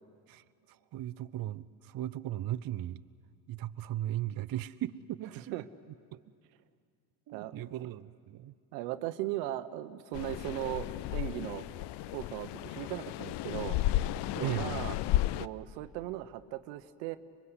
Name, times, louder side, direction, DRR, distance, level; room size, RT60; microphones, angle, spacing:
voice 1, 0.3-3.0 3.5-5.5 6.1-6.2 7.3-8.5 14.4-14.9, right 13 dB, 45° right, 13 dB, 0.7 m, -37 dB
voice 2, 8.7-11.7 12.1-13.8 14.3-15.0 15.4-17.2, right 15 dB, 85° right, 12 dB, 1.0 m, -38 dB
sound 1, 10.1-15.5, left 15 dB, 55° left, 0.6 m, -33 dB
25.0 x 21.0 x 8.1 m, 2.3 s
supercardioid pair, 75°, 49 cm